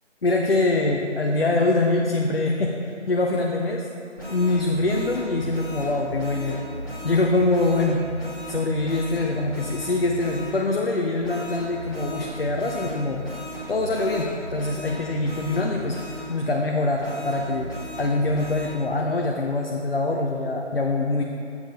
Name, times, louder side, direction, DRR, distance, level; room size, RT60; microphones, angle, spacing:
voice 1, 0.2-3.9 4.3-6.6 7.0-8.0 8.5-13.2 13.7-16.0 16.3-17.7 18.0-21.2, left 2 dB, 55° left, 1 dB, 0.6 m, -24 dB
sound 1, 4.2-10.5 11.2-16.3 17.0-18.7, right 1 dB, 15° left, 1.4 m, -36 dB
7.4 x 7.2 x 3.8 m, 2.6 s
figure-of-eight pair, 165°, 36 cm